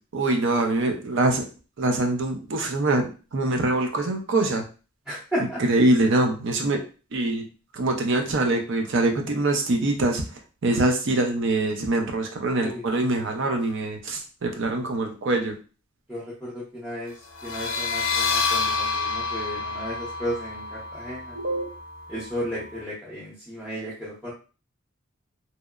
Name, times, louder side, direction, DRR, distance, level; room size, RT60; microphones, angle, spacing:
voice 1, 0.1-1.5 1.8-4.6 5.6-6.8 7.1-7.5 7.7-10.2 10.6-15.6 21.3-21.7, right 2 dB, 60° right, 4 dB, 0.5 m, -24 dB
voice 2, 5.1-5.6 12.6-12.8 16.1-17.1 17.4-21.3 22.1-24.3, equal, ahead, -8 dB, 0.6 m, -33 dB
sound 1, 17.3-22.8, left 4 dB, 65° left, 0.4 m, -29 dB
2.8 x 2.0 x 2.3 m, 0.35 s
head